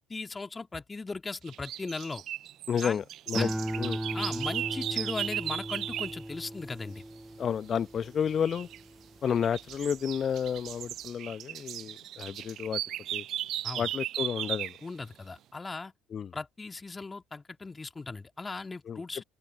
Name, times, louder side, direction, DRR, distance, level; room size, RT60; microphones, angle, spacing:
voice 1, 0.1-2.2 2.8-3.0 3.4-3.5 4.1-7.0 13.6-13.9 14.8-15.9 16.3-19.2, left 3 dB, 20° left, 2.6 m, -38 dB
sound 1, 1.5-6.2 8.4-8.8 9.3-14.8, right 12 dB, 55° right, 0.6 m, -36 dB
voice 2, 2.7-3.5 3.8-4.0 7.4-8.7 9.2-12.8 13.1-13.2 13.8-14.8 16.1-16.3 18.9-19.0, left 7 dB, 40° left, 1.2 m, -31 dB
sound 2, 3.3-9.9 10.3-10.8, right 1 dB, 5° right, 0.7 m, -38 dB
open air
figure-of-eight pair, 60°, 0 cm